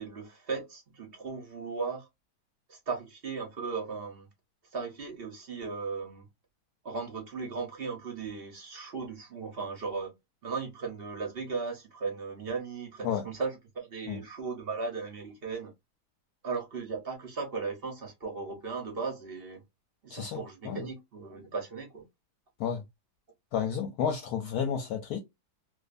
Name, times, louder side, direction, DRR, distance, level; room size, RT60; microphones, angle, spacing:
voice 1, 0.0-2.1 2.7-4.3 4.7-6.3 6.8-10.1 10.4-15.7 16.4-19.6 20.0-22.1, right 4 dB, 50° right, 0.7 m, -37 dB
voice 2, 20.1-20.8 22.6-22.8 23.5-25.2, left 7 dB, 75° left, 1.0 m, -31 dB
2.5 x 2.4 x 2.3 m
omnidirectional pair, 1.8 m